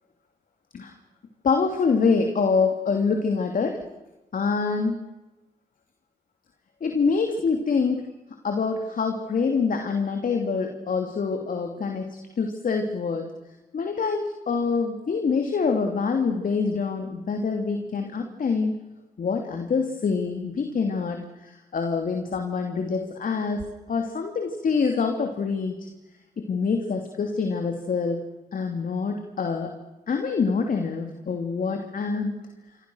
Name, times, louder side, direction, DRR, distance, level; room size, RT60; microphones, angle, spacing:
voice 1, 1.4-3.8 4.3-5.0 6.8-8.1 8.4-13.3 13.7-18.7 19.2-25.9 26.4-28.2 28.5-29.7 30.1-32.3, left 5 dB, 60° left, 4 dB, 3.0 m, -25 dB
27.5 x 24.5 x 6.5 m, 1.1 s
supercardioid pair, 50°, 16 cm